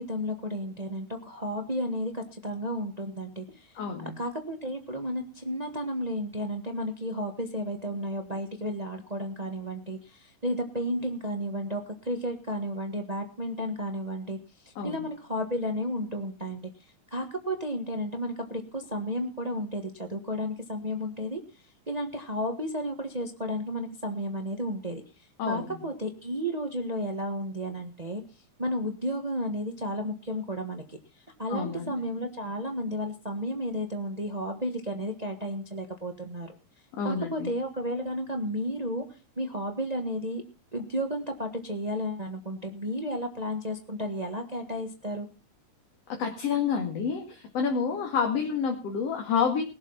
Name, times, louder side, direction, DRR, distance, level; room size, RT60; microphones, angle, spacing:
voice 1, 0.0-3.7 4.2-14.4 14.6-16.7 17.1-21.4 21.9-25.0 25.5-28.2 28.6-31.0 31.4-36.5 37.0-39.0 39.4-40.4 40.7-45.3, equal, 80° right, 5 dB, 0.3 m, -32 dB
voice 2, 3.7-4.1 14.8-15.1 25.4-25.8 31.5-31.9 37.0-37.5 46.1-49.6, left 6 dB, 55° left, 2 dB, 2.8 m, -29 dB
21.0 x 7.5 x 5.7 m, 0.33 s
omnidirectional pair, 3.8 m